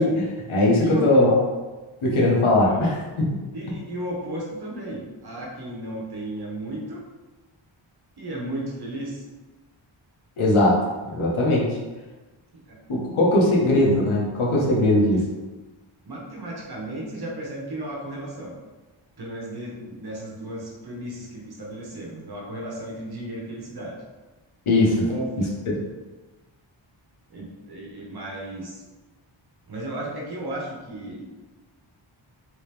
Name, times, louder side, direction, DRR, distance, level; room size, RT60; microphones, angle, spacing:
voice 1, 0.0-1.4 2.0-3.4 10.4-10.8 11.0-11.8 12.9-15.2 24.7-25.1 25.7-25.8, left 1 dB, 80° left, -3 dB, 1.1 m, -20 dB
voice 2, 0.8-1.1 2.6-2.8 3.5-7.0 8.2-9.2 12.5-12.8 15.1-15.3 16.1-18.5 19.2-24.0 25.0-25.3 27.3-28.8 29.7-31.2, right 1 dB, 50° right, -3 dB, 1.0 m, -34 dB
3.3 x 2.9 x 3.4 m, 1.2 s
wide cardioid pair, 105°, 48 cm